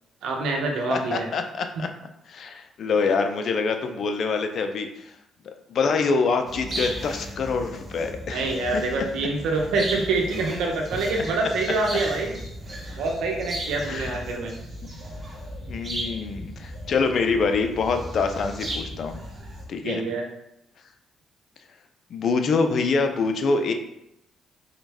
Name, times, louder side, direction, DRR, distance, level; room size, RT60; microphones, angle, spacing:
voice 1, 0.2-1.3 1.8-1.9 8.3-12.4 13.0-14.5 19.8-20.2, right 3 dB, 85° right, 1 dB, 0.8 m, -26 dB
voice 2, 0.9-1.9 2.3-5.1 5.4-8.8 13.8-14.1 15.7-19.2 19.7-20.0 22.1-23.7, left 4 dB, 60° left, 6 dB, 0.5 m, -25 dB
sound 1, 6.5-19.6, right 1 dB, 35° right, 1.1 m, -36 dB
3.9 x 3.1 x 3.5 m, 0.84 s
cardioid pair, 90°, 0 cm